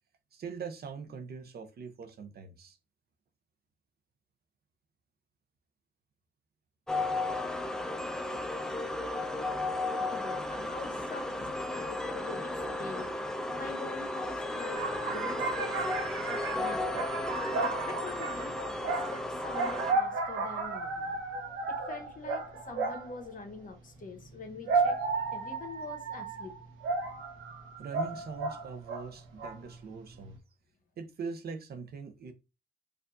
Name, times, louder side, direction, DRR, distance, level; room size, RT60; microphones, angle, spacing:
voice 1, 0.3-2.8 27.8-30.4 31.0-32.3, right 5 dB, 50° right, 0.6 m, -42 dB
sound 1, 6.9-19.9, left 2 dB, 5° left, 0.4 m, -34 dB
voice 2, 10.1-13.1 13.6-15.8 16.2-16.8 17.8-18.5 19.1-21.2 21.7-25.0 25.3-26.5, left 4 dB, 45° left, 1.0 m, -44 dB
sound 2, 14.7-23.2 24.3-29.1 29.4-29.8, right 3 dB, 90° right, 0.9 m, -33 dB
4.5 x 2.5 x 2.5 m
cardioid pair, 90°, 20 cm